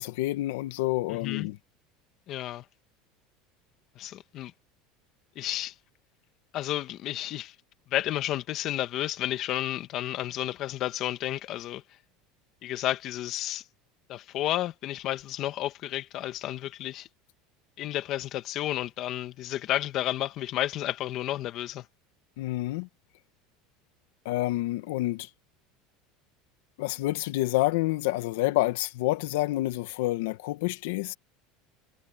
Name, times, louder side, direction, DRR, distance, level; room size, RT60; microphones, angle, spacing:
voice 1, 0.0-1.6 22.4-22.9 24.3-25.3 26.8-31.1, left 18 dB, 80° left, 1.7 m, -28 dB
voice 2, 1.1-1.5 2.3-2.6 4.0-4.5 5.4-5.7 6.5-7.6 7.9-11.8 12.6-13.6 14.1-17.1 17.8-21.8, left 14 dB, 45° left, 1.6 m, -31 dB
supercardioid pair, 145°, 0 cm